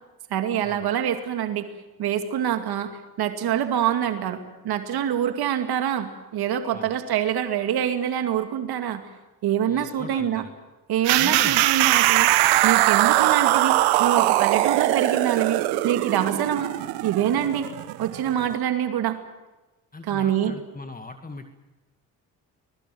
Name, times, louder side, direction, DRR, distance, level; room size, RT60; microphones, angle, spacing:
voice 1, 0.3-1.7 2.0-2.9 3.2-9.0 9.4-10.4 10.9-16.7 17.0-17.7 18.0-19.2 20.0-20.5, right 10 dB, 70° right, 7 dB, 2.4 m, -25 dB
voice 2, 9.7-10.5 11.2-11.6 19.9-21.5, left 2 dB, 20° left, 6 dB, 2.1 m, -39 dB
sound 1, 11.0-18.5, right 16 dB, 90° right, 1.1 m, -21 dB
25.0 x 20.0 x 7.8 m, 1.1 s
supercardioid pair, 55°, 39 cm